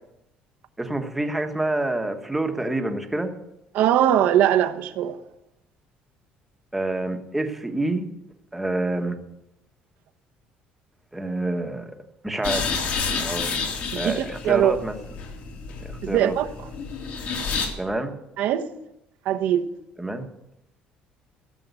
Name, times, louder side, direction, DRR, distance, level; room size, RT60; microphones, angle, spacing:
voice 1, 0.8-3.3 6.7-8.1 8.5-9.2 11.1-11.9 12.2-12.7 13.1-13.7 13.9-15.0 15.8-16.3 17.8-18.1 20.0-20.3, right 2 dB, 5° right, 1.2 m, -27 dB
voice 2, 3.7-5.1 13.9-14.1 14.4-14.8 16.0-16.5 18.4-18.7 19.3-19.6, right 11 dB, 65° right, 1.1 m, -20 dB
sound 1, 12.4-17.7, left 5 dB, 60° left, 3.3 m, -30 dB
15.5 x 7.7 x 8.2 m
cardioid pair, 160°, 3 cm